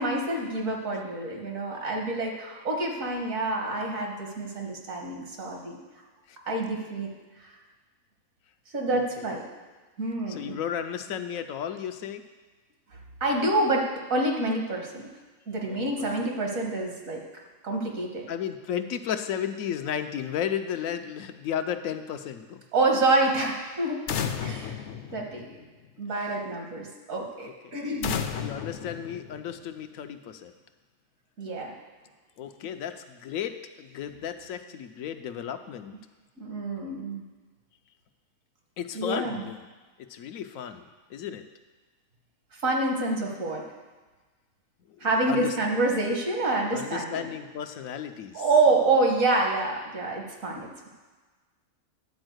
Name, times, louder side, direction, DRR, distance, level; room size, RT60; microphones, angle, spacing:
voice 1, 0.0-5.8 6.5-7.1 7.4-7.6 8.7-9.5 10.0-10.5 13.2-15.0 15.5-17.2 17.6-18.3 22.7-24.1 24.4-24.8 25.1-25.6 26.0-28.2 31.4-31.7 36.4-37.2 38.9-39.4 42.6-43.6 45.0-47.3 48.3-50.9, right 2 dB, 75° right, 1 dB, 1.9 m, -27 dB
voice 2, 10.3-12.2 15.6-16.3 18.3-22.6 27.4-27.5 28.4-30.5 32.4-35.9 38.8-39.7 40.0-41.4 45.3-45.6 46.7-48.4, left 9 dB, 80° left, 8 dB, 1.0 m, -34 dB
sound 1, 24.1-25.9 28.0-29.8, left 7 dB, 65° left, 0.9 m, -33 dB
10.5 x 4.4 x 7.9 m, 1.3 s
omnidirectional pair, 1.4 m